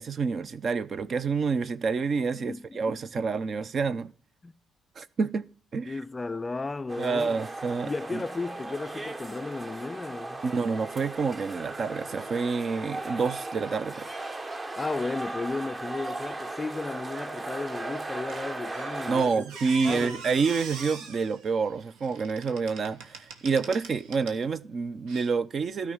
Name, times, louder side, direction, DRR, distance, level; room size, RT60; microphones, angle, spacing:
voice 1, 0.0-4.1 5.0-5.4 5.7-6.0 7.0-8.2 10.4-14.1 19.1-25.9, right 5 dB, 50° right, 0.7 m, -28 dB
voice 2, 2.3-3.2 4.4-4.5 5.9-7.4 7.8-10.4 14.8-19.5 19.8-20.2, left 3 dB, 25° left, 0.3 m, -34 dB
sound 1, 6.9-19.2, right 2 dB, 25° right, 1.0 m, -37 dB
Squeak, 18.3-24.5 25.1-25.3, right 5 dB, 85° right, 1.4 m, -43 dB
13.0 x 5.1 x 5.5 m
supercardioid pair, 65°, 0 cm